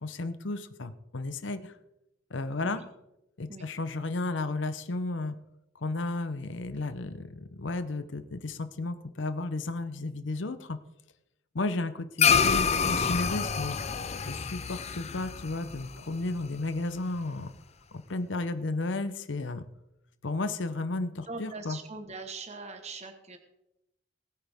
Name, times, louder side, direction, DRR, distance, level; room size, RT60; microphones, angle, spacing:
voice 1, 0.0-1.7 2.3-2.8 3.4-5.3 5.7-10.8 11.5-13.8 14.2-17.5 17.9-19.6 20.2-21.8, left 2 dB, 65° left, 11 dB, 0.8 m, -33 dB
sound 1, 12.2-16.8, left 6 dB, 35° left, 0.6 m, -27 dB
voice 2, 21.3-23.4, right 3 dB, 35° right, 6 dB, 1.2 m, -41 dB
20.0 x 9.0 x 3.6 m, 0.88 s
head